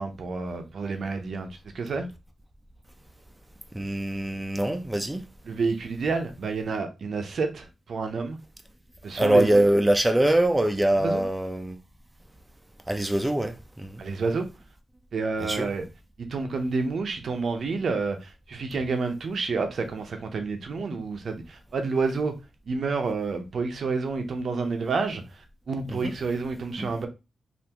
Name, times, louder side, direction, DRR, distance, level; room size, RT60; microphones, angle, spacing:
voice 1, 0.0-1.5 1.7-2.1 5.4-8.4 9.0-9.6 11.0-11.2 14.0-14.5 15.1-15.8 16.2-22.3 22.6-27.1, right 4 dB, 70° right, 0.6 m, -29 dB
voice 2, 3.7-5.2 9.2-11.8 12.9-14.0 15.4-15.7 25.9-26.1 26.8-26.9, right 1 dB, 15° right, 0.5 m, -23 dB
3.3 x 2.5 x 2.9 m
cardioid pair, 55°, 0 cm